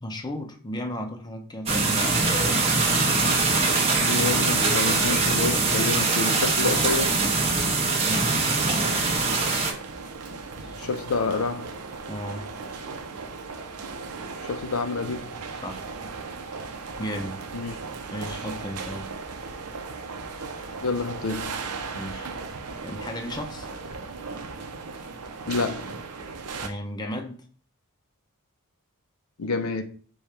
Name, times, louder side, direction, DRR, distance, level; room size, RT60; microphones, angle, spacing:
voice 1, 0.0-2.4 8.0-8.3 10.6-10.8 12.1-12.5 15.6-15.8 17.0-17.4 18.1-19.2 22.0-22.4 22.8-23.7 26.6-27.4, equal, 20° left, 0.5 m, -34 dB
sound 1, 1.7-9.7, right 3 dB, 25° right, 1.0 m, -22 dB
voice 2, 4.0-7.1 10.8-11.7 14.4-15.3 17.5-17.8 20.8-21.5 25.5-26.0 29.4-29.8, left 4 dB, 70° left, 0.5 m, -28 dB
sound 2, 8.6-26.7, right 4 dB, 85° right, 0.7 m, -37 dB
4.9 x 2.3 x 4.2 m
head